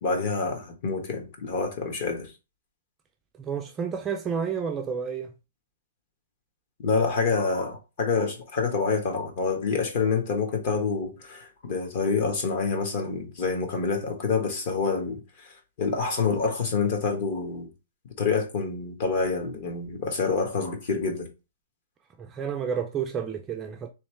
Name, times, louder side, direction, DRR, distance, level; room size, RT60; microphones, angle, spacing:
voice 1, 0.0-2.3 6.8-17.7 18.2-21.3, left 4 dB, 40° left, 1.2 m, -27 dB
voice 2, 3.4-5.3 22.2-23.9, right 7 dB, 15° right, 0.3 m, -30 dB
3.5 x 3.1 x 3.1 m
hypercardioid pair, 165°, 0 cm